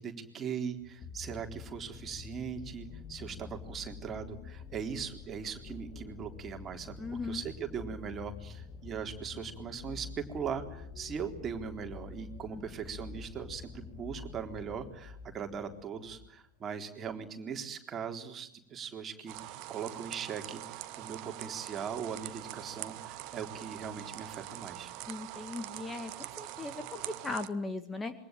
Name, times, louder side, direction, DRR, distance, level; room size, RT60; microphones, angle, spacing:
voice 1, 0.0-7.0 7.3-24.9, right 7 dB, 25° right, 5 dB, 3.9 m, -40 dB
sound 1, 0.8-16.4 17.2-17.3, left 5 dB, 30° left, 1.8 m, -47 dB
voice 2, 7.0-7.4 12.5-12.6 25.1-28.1, left 3 dB, 10° left, 9 dB, 1.9 m, -38 dB
sound 2, 19.3-27.5, right 15 dB, 40° right, 1.4 m, -44 dB
27.0 x 23.5 x 9.1 m, 0.71 s
figure-of-eight pair, 90°, 0 cm